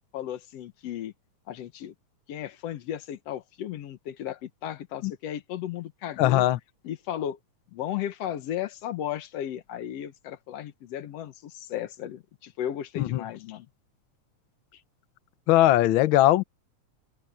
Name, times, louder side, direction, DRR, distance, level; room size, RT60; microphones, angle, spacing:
voice 1, 0.1-1.1 1.5-1.9 2.3-6.4 6.8-7.4 7.7-13.7 14.7-14.8, left 11 dB, 65° left, 2.0 m, -35 dB
voice 2, 6.2-6.6 13.0-13.2 15.5-16.4, left 14 dB, 90° left, 1.1 m, -20 dB
open air
omnidirectional pair, 3.3 m